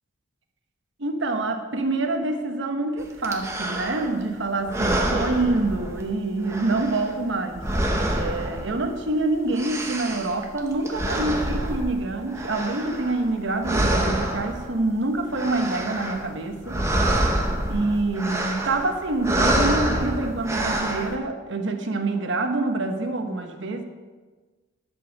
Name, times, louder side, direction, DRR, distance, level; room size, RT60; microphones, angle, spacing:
voice 1, 1.0-7.7 8.1-16.8 17.7-23.8, right 2 dB, 65° right, 5 dB, 1.2 m, -26 dB
sound 1, 3.2-4.2 4.6-6.2 6.4-9.1 9.4-13.4 13.6-14.9 15.2-16.3 16.6-21.1, right 1 dB, 15° right, 1.0 m, -27 dB
11.5 x 5.4 x 7.2 m, 1.4 s
head